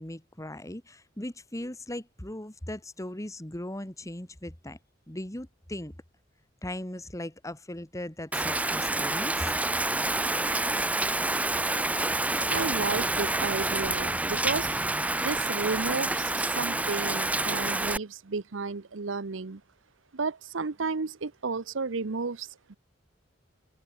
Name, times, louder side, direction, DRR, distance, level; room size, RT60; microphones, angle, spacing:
voice 1, 0.0-4.8 5.1-5.9 6.6-9.5, left 1 dB, 15° left, 2.0 m, -38 dB
Rain, 8.3-18.0, right 2 dB, 10° right, 0.6 m, -28 dB
voice 2, 12.5-14.8 15.2-19.6 20.1-22.8, right 4 dB, 80° right, 0.8 m, -32 dB
head